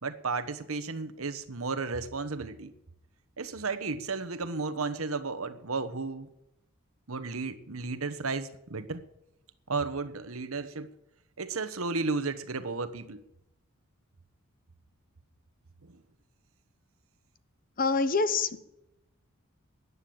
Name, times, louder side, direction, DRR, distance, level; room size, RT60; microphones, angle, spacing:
voice 1, 0.0-2.7 3.4-6.3 7.1-9.0 9.7-10.9 11.4-13.2 15.8-16.0, right 4 dB, 80° right, 11 dB, 1.2 m, -33 dB
voice 2, 17.8-18.6, left 4 dB, 40° left, 13 dB, 1.0 m, -26 dB
14.0 x 9.7 x 8.7 m, 0.85 s
head